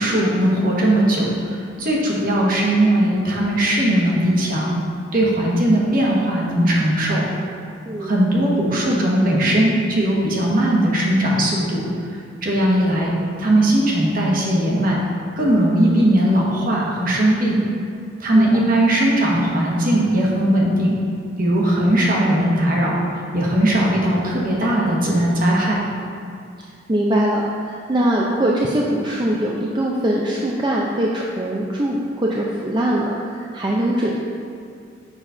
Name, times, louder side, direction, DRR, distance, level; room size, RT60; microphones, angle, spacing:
voice 1, 0.0-4.8 5.1-7.3 8.0-11.9 12.4-13.1 13.4-15.0 15.4-17.6 18.2-21.0 21.4-23.0 23.3-25.8, right 1 dB, 50° right, -3 dB, 1.3 m, -18 dB
voice 2, 26.9-34.2, right 1 dB, 25° right, -3 dB, 0.5 m, -22 dB
6.9 x 4.1 x 5.5 m, 2.4 s
head